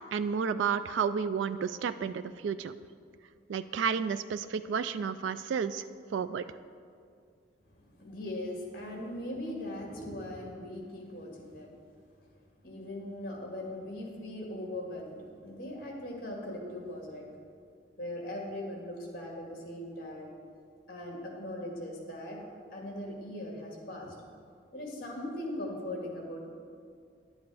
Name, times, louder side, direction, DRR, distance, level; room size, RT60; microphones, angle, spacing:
voice 1, 0.1-2.7 3.5-5.8 6.1-6.4, right 6 dB, 80° right, 12 dB, 0.3 m, -31 dB
voice 2, 7.8-11.7 12.3-17.3 18.0-20.5 20.9-22.4 22.7-24.2 24.7-26.5, left 1 dB, 50° left, 0 dB, 2.0 m, -40 dB
10.5 x 8.1 x 4.8 m, 2.2 s
head